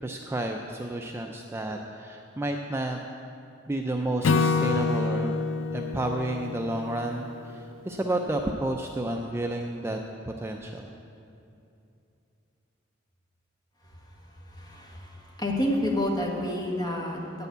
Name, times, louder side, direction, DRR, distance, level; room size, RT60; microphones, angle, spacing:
voice 1, 0.0-3.0 3.7-10.0 10.3-10.9, right 1 dB, 15° right, 2 dB, 0.4 m, -31 dB
Acoustic guitar / Strum, 4.2-7.6, left 4 dB, 90° left, 0.4 m, -27 dB
voice 2, 14.5-17.5, left 1 dB, 20° left, -1 dB, 1.5 m, -29 dB
8.9 x 6.9 x 8.1 m, 2.7 s
head